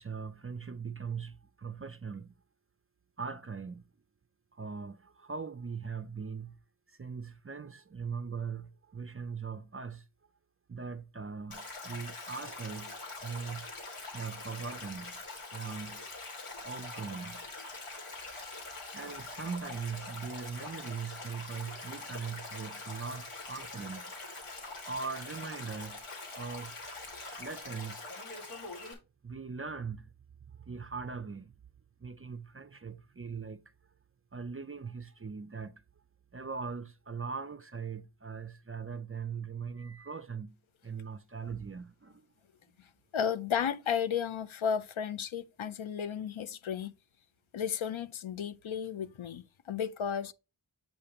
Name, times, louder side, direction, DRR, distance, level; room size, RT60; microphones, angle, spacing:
voice 1, 0.0-2.3 3.2-3.8 4.5-6.6 6.9-10.1 10.7-13.7 14.1-15.2 15.5-16.0 16.6-17.4 18.9-24.1 24.8-26.1 26.4-26.8 27.4-28.1 29.2-30.1 30.5-31.5 32.0-33.6 34.3-35.8 36.3-40.6 40.8-42.3, right 5 dB, 30° right, 0.4 m, -40 dB
Stream, 11.5-28.9, left 3 dB, 90° left, 2.0 m, -44 dB
voice 2, 43.1-46.9 47.5-50.3, left 8 dB, 70° left, 0.6 m, -33 dB
7.7 x 2.9 x 5.0 m
wide cardioid pair, 60°, 49 cm